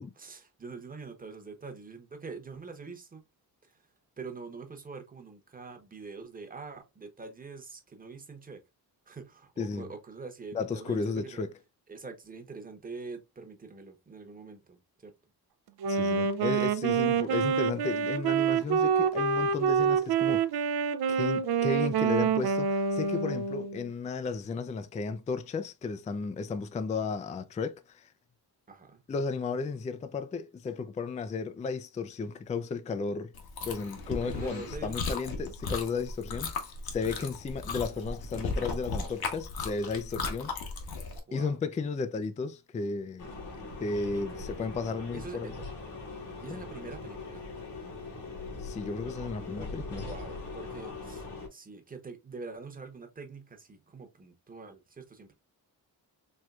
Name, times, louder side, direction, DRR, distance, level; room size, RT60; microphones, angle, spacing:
voice 1, 0.2-3.2 4.2-8.6 9.1-11.4 11.9-15.1 17.1-17.2 28.7-29.0 34.2-35.0 41.3-41.6 44.1-44.6 45.1-45.5 46.4-47.5 50.1-55.3, right 4 dB, 20° right, 1.0 m, -44 dB
voice 2, 9.6-9.9 10.5-11.5 15.9-20.4 21.1-28.1 29.1-33.3 33.6-40.5 41.3-45.5 46.5-46.6 48.6-50.1, left 4 dB, 20° left, 0.3 m, -34 dB
Wind instrument woodwind instrument, 15.8-23.8, right 6 dB, 75° right, 0.6 m, -27 dB
Chewing mastication, 33.3-41.2, left 4 dB, 65° left, 1.1 m, -36 dB
sound 1, 43.2-51.5, left 3 dB, 85° left, 2.0 m, -41 dB
4.5 x 3.1 x 2.4 m
wide cardioid pair, 135°, 39 cm